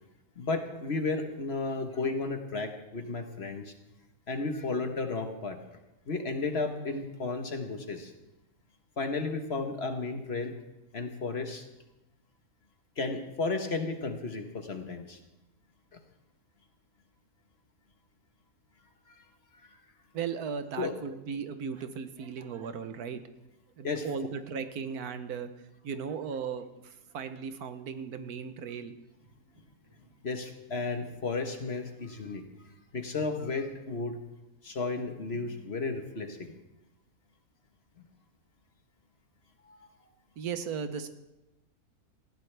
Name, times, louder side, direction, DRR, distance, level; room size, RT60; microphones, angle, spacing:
voice 1, 0.4-3.7 4.3-5.6 6.1-8.1 9.0-10.6 10.9-11.6 13.0-15.2 15.9-16.0 19.1-19.3 19.5-19.8 20.8-20.9 23.8-24.1 30.2-34.2 34.6-36.5 38.0-38.1 39.6-40.1, left 3 dB, 45° left, 6 dB, 1.4 m, -33 dB
voice 2, 20.1-23.2 23.8-25.5 25.8-28.9 40.4-41.1, right 6 dB, 75° right, 10 dB, 1.4 m, -36 dB
sound 1, 28.6-28.7 29.2-33.8 34.2-34.3 35.0-35.6, left 1 dB, 55° right, 4.1 m, -55 dB
19.0 x 15.5 x 3.3 m, 0.97 s
omnidirectional pair, 1.6 m